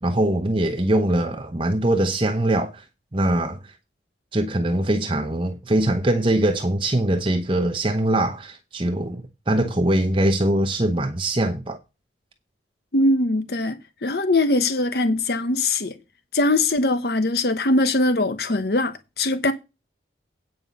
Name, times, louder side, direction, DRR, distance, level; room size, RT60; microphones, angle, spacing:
voice 1, 0.0-2.8 3.1-3.6 4.3-11.8, right 1 dB, 30° right, 0.9 m, -22 dB
voice 2, 12.9-16.0 16.3-19.5, left 2 dB, 60° left, 1.0 m, -21 dB
9.2 x 5.3 x 6.8 m
head